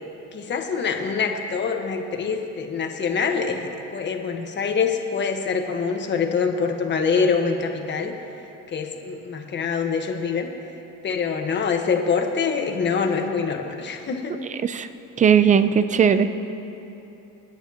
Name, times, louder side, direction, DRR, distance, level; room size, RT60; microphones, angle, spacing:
voice 1, 0.3-8.1 8.7-10.5 11.0-14.4, left 5 dB, 35° left, 4 dB, 1.3 m, -25 dB
voice 2, 15.2-16.3, right 7 dB, 25° right, 11 dB, 0.5 m, -17 dB
29.5 x 9.9 x 2.9 m, 2.9 s
cardioid pair, 135°, 31 cm